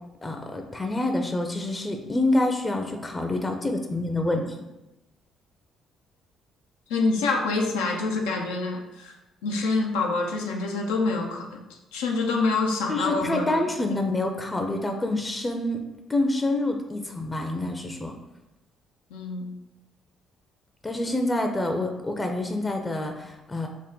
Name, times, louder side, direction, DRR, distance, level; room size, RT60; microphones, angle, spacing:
voice 1, 0.2-4.5 12.9-15.8 16.1-18.1 20.8-23.7, left 2 dB, 25° left, 4 dB, 0.5 m, -27 dB
voice 2, 6.9-9.1 9.4-13.6 19.1-19.5, left 3 dB, 90° left, 1 dB, 0.4 m, -26 dB
3.6 x 2.1 x 3.7 m, 0.96 s
supercardioid pair, 60°, 0 cm